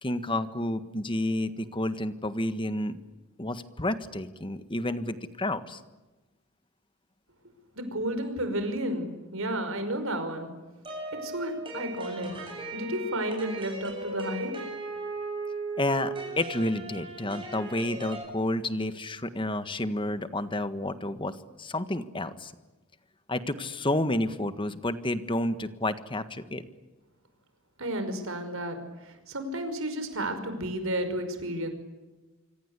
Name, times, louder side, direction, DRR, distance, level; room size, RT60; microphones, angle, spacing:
voice 1, 0.0-3.0 3.4-5.8 15.8-22.5 23.3-26.6, left 1 dB, 25° left, 11 dB, 1.6 m, -30 dB
voice 2, 7.8-10.5 11.2-12.3 12.7-14.5 27.8-28.8 29.1-31.7, right 1 dB, 65° right, 8 dB, 5.4 m, -32 dB
sound 1, 10.9-18.2, right 2 dB, 25° right, 7.6 m, -37 dB
26.5 x 25.5 x 8.4 m, 1.1 s
head